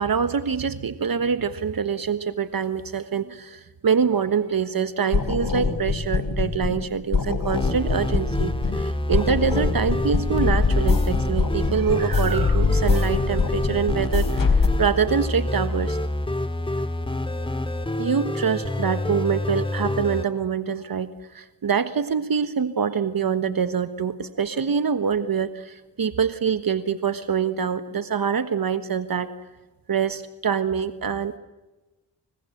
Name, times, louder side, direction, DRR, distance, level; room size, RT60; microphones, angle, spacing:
voice 1, 0.0-16.0 18.0-29.3 29.9-31.4, right 6 dB, 55° right, 12 dB, 1.4 m, -25 dB
sound 1, 5.1-6.9 7.1-8.9 9.1-14.7, left 4 dB, 50° left, 4.1 m, -23 dB
sound 2, 7.5-20.2, left 1 dB, 10° left, 2.5 m, -27 dB
29.5 x 23.0 x 7.9 m, 1.1 s
cardioid pair, 60°, 41 cm